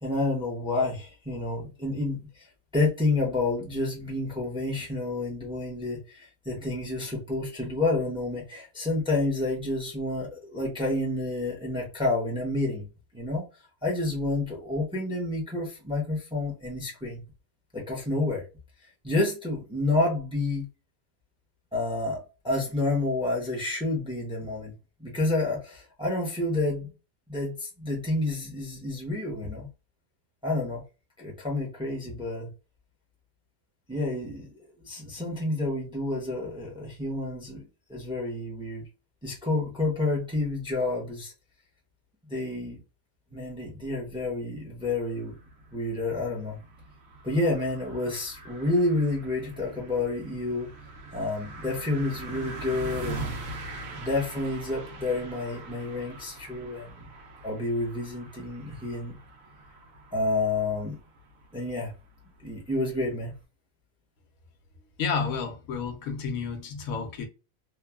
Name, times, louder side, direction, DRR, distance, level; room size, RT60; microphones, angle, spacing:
voice 1, 0.0-2.5 2.7-12.9 13.1-13.4 13.8-17.2 17.7-18.4 19.0-20.7 21.7-24.7 25.0-26.9 27.3-29.7 30.4-30.8 31.2-32.5 33.9-34.5 34.9-37.6 37.9-38.9 39.2-41.3 42.3-42.8 43.3-45.3 45.7-46.6 47.2-50.7 51.1-53.4 53.9-57.1 57.4-59.2 60.1-61.0 61.5-61.9 62.4-63.3, left 2 dB, 5° right, 0.6 m, -29 dB
sound 1, 44.8-63.4, right 2 dB, 80° right, 1.1 m, -43 dB
voice 2, 65.0-67.3, left 5 dB, 80° left, 1.1 m, -31 dB
3.0 x 2.2 x 2.3 m
omnidirectional pair, 1.4 m